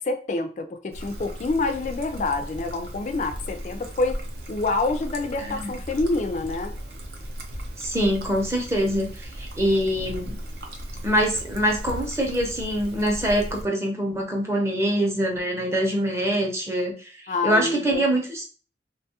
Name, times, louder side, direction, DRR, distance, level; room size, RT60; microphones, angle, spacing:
voice 1, 0.0-4.2 4.5-6.7 17.3-18.0, left 3 dB, 40° left, 6 dB, 0.3 m, -27 dB
Trickle dribble, 0.9-13.6, equal, 60° right, 0.5 m, -37 dB
voice 2, 5.4-5.7 7.8-10.3 11.0-16.9 17.4-18.4, equal, 15° right, 0 dB, 0.6 m, -24 dB
2.9 x 2.3 x 2.8 m, 0.38 s
head